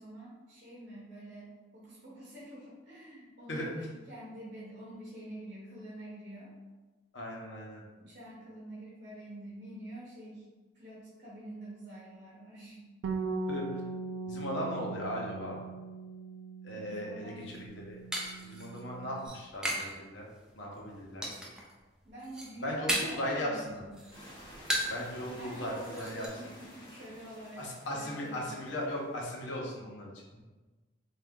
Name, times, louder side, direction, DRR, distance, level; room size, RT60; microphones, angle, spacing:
voice 1, 0.0-6.5 8.0-10.4 10.7-12.8 13.7-14.0 16.7-17.6 21.4-21.5 22.0-24.1 25.4-28.8, right 1 dB, 45° right, -7 dB, 0.9 m, -47 dB
voice 2, 7.1-7.8 13.5-13.7 14.3-15.6 16.6-18.0 18.4-20.2 20.5-21.2 22.6-23.8 24.9-26.4 27.6-30.4, equal, 75° left, -2 dB, 0.9 m, -37 dB
Bass guitar, 13.0-19.3, right 3 dB, 80° right, 0.4 m, -40 dB
sound 1, 17.4-20.0 20.3-20.8 21.2-21.7 22.1-23.3 23.7-25.1 25.4-25.5 25.8-26.3, right 1 dB, 5° right, 0.5 m, -36 dB
sound 2, 24.1-29.5, equal, 25° left, 1.1 m, -52 dB
3.5 x 2.5 x 3.7 m, 1.2 s
head